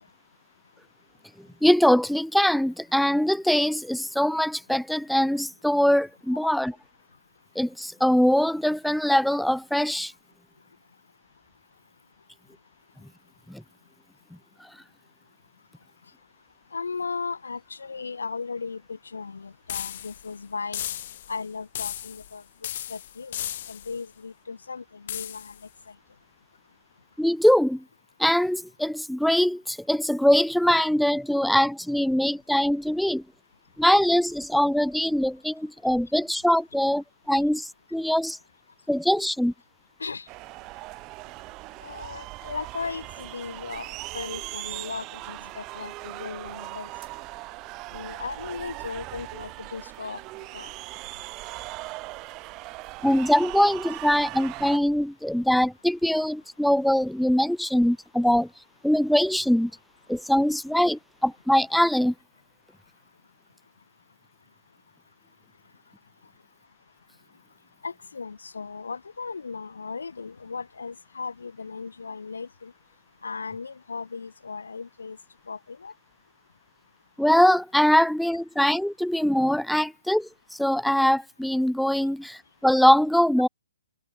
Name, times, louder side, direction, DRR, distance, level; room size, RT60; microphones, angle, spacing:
voice 1, 1.6-6.7 7.6-10.1 13.5-13.6 14.6-14.7 27.2-27.8 28.2-33.2 33.8-38.4 38.9-39.5 53.0-58.5 58.8-59.7 60.1-62.1 77.2-83.5, equal, ahead, 0.7 m, -22 dB
voice 2, 16.7-20.8 21.3-22.4 22.9-23.4 23.7-25.5 25.9-26.0 40.0-40.3 41.8-46.9 47.9-50.2 50.5-50.7 67.8-72.7 73.2-75.2 75.5-75.9, left 5 dB, 65° left, 2.7 m, -36 dB
sound 1, 19.7-20.3 20.7-21.4 21.7-22.3 22.6-24.0 25.1-25.6, left 12 dB, 45° left, 1.5 m, -35 dB
sound 2, 40.3-54.8, right 22 dB, 25° right, 1.6 m, -39 dB
figure-of-eight pair, 125°, 0 cm